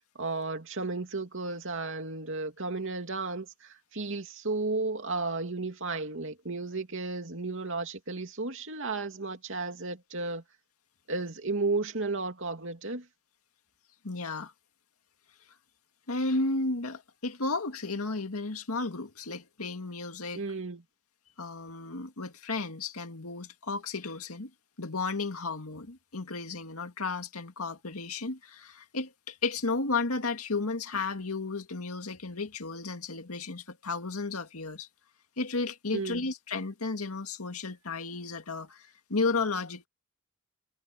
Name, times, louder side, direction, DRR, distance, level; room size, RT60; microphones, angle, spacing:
voice 1, 0.2-10.4 11.1-13.1 20.3-20.8 35.9-36.3, right 3 dB, 60° right, 2.8 m, -33 dB
voice 2, 14.0-14.5 16.1-20.4 21.4-24.5 24.8-34.9 35.4-39.9, left 3 dB, 90° left, 2.1 m, -33 dB
head